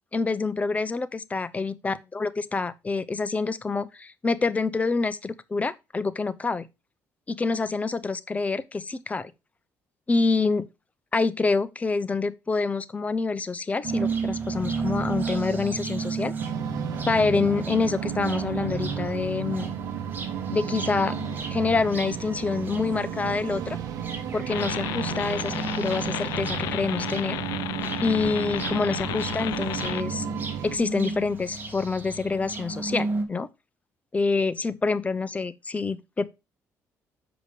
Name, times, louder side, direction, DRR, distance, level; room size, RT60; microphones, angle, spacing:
voice 1, 0.1-6.7 7.3-9.3 10.1-10.7 11.1-16.3 17.1-19.7 20.5-21.2 21.5-23.8 24.3-27.4 28.0-30.3 30.6-33.5 34.1-36.3, left 4 dB, 25° left, 0.7 m, -27 dB
sound 1, 13.8-33.2, right 4 dB, 30° right, 1.9 m, -34 dB
sound 2, 16.4-30.8, right 10 dB, 80° right, 0.9 m, -34 dB
sound 3, 24.5-30.0, left 15 dB, 85° left, 0.4 m, -33 dB
6.7 x 5.0 x 4.9 m
cardioid pair, 90°, 6 cm